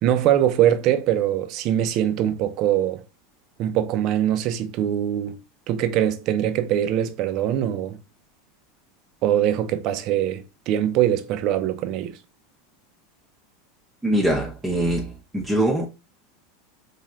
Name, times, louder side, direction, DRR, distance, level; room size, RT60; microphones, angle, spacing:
voice 1, 0.0-3.0 3.6-5.4 5.7-8.0 9.2-12.2, right 11 dB, 50° right, 0.5 m, -22 dB
voice 2, 14.0-15.9, right 1 dB, 10° right, 0.7 m, -23 dB
4.2 x 2.9 x 2.3 m
hypercardioid pair, 90°, 0 cm